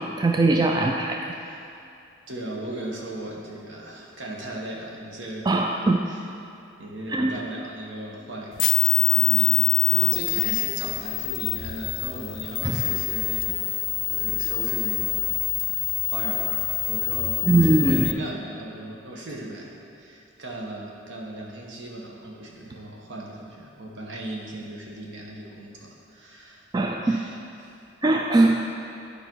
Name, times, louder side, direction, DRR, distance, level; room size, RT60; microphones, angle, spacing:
voice 1, 0.0-1.3 5.5-6.0 7.1-7.4 12.6-12.8 17.4-18.1 26.7-27.2 28.0-28.7, right 2 dB, 20° right, 2 dB, 0.3 m, -21 dB
voice 2, 2.3-5.5 6.1-6.2 6.8-26.7 27.0-27.7, right 1 dB, 65° right, -1 dB, 1.3 m, -38 dB
sound 1, 8.6-18.1, left 17 dB, 75° left, 0.3 m, -25 dB
11.0 x 5.1 x 4.6 m, 2.7 s
head